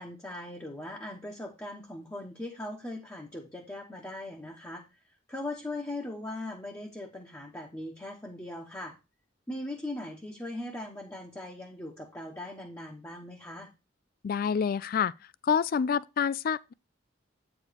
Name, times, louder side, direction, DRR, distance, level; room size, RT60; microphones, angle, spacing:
voice 1, 0.0-4.8 5.3-9.0 9.5-13.7, left 1 dB, 15° left, 1.0 m, -39 dB
voice 2, 14.2-15.1 15.4-16.7, left 7 dB, 50° left, 0.3 m, -27 dB
8.9 x 4.9 x 4.1 m
head